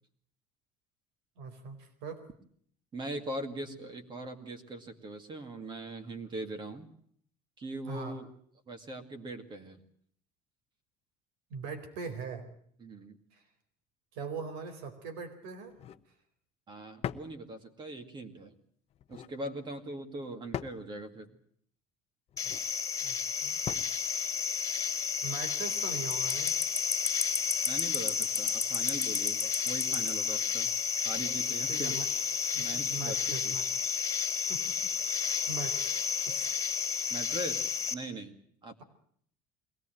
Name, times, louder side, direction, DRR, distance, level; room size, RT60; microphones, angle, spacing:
voice 1, 1.4-2.2 7.9-8.2 11.5-12.5 13.3-13.4 14.1-15.7 23.0-23.6 25.2-26.8 31.7-32.1 32.5-33.7 34.5-36.0 36.3-36.5, right 4 dB, 85° right, 8 dB, 4.4 m, -41 dB
voice 2, 2.9-6.9 7.6-8.3 8.7-9.8 12.8-13.2 16.7-18.5 19.1-21.3 27.7-30.7 31.0-32.0 32.6-33.5 37.1-38.4 38.6-38.8, right 2 dB, 25° right, 6 dB, 2.2 m, -41 dB
sound 1, 15.7-16.1 17.0-17.4 18.9-19.3 20.5-20.9 22.3-22.7 23.7-24.0, left 10 dB, 35° left, 0.9 m, -40 dB
sound 2, 22.4-37.9, left 6 dB, 20° left, 3.1 m, -31 dB
22.5 x 18.0 x 9.2 m, 0.64 s
cardioid pair, 150°, 18 cm